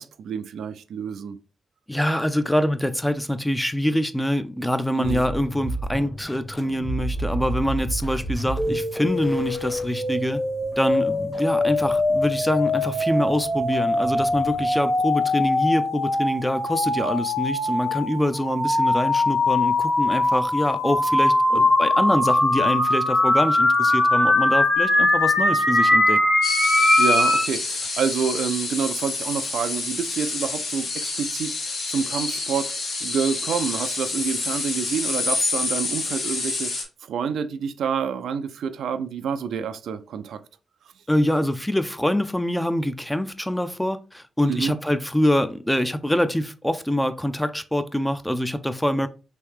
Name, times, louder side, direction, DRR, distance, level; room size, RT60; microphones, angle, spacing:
voice 1, 0.0-1.4 5.0-5.2 21.5-21.6 26.8-40.4 44.5-44.8, right 7 dB, 90° right, 0.3 m, -28 dB
voice 2, 1.9-10.4 10.8-26.2 41.1-49.1, equal, 5° left, 0.4 m, -25 dB
sound 1, 5.0-14.7, right 2 dB, 25° left, 1.1 m, -34 dB
sound 2, 8.6-27.5, left 2 dB, 40° left, 0.9 m, -21 dB
sound 3, 26.4-36.8, left 3 dB, 70° left, 0.9 m, -28 dB
3.1 x 2.7 x 3.4 m
cardioid pair, 85°, 0 cm